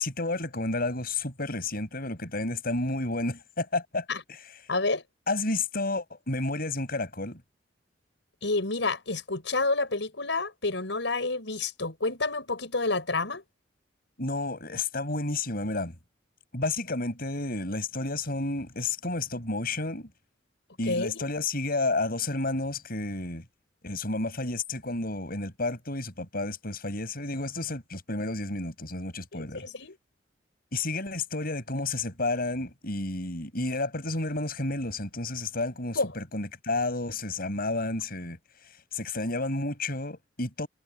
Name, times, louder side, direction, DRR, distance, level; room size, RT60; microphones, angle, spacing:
voice 1, 0.0-4.5 5.3-7.4 14.2-15.9 16.5-20.1 20.8-23.4 23.8-29.6 30.7-38.4 38.9-40.7, left 2 dB, 55° left, 6.9 m, -31 dB
voice 2, 4.7-5.0 8.4-13.4 20.9-21.2 29.3-30.0 36.0-36.1, left 3 dB, 80° left, 5.5 m, -29 dB
head